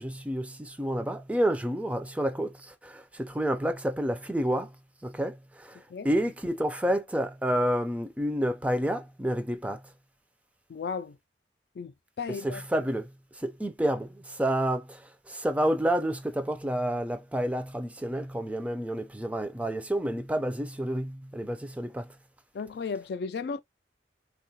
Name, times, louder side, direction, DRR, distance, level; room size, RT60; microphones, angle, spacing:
voice 1, 0.0-4.7 5.0-5.8 6.0-9.8 12.4-13.1 13.4-22.1, right 1 dB, 10° right, 0.4 m, -29 dB
voice 2, 10.7-11.2 11.8-11.9 12.2-12.6 22.5-23.6, left 5 dB, 65° left, 0.3 m, -34 dB
3.6 x 2.3 x 2.7 m
head